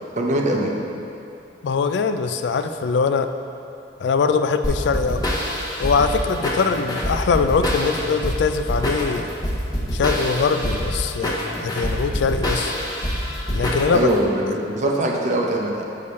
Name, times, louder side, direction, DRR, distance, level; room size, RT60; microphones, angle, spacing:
voice 1, 0.2-0.7 13.9-15.8, right 1 dB, 45° right, 0 dB, 0.7 m, -22 dB
voice 2, 1.6-3.3 4.0-5.2 5.8-9.3 9.9-12.7 13.5-14.1, left 5 dB, 70° left, 8 dB, 0.3 m, -22 dB
sound 1, 4.6-14.2, equal, 20° left, 0.9 m, -25 dB
7.0 x 6.7 x 3.2 m, 2.7 s
head